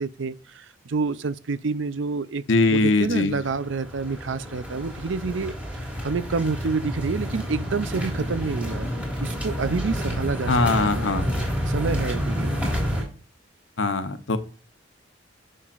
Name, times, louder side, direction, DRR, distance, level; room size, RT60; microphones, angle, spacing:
voice 1, 0.0-2.4 2.7-8.9 9.2-10.5 10.8-11.1 11.7-12.5, right 4 dB, 75° right, 0.6 m, -28 dB
voice 2, 2.5-3.4 10.5-11.3 13.8-14.4, left 3 dB, 75° left, 1.0 m, -21 dB
sound 1, 3.3-13.0, equal, 5° right, 3.2 m, -29 dB
10.0 x 6.5 x 2.5 m
head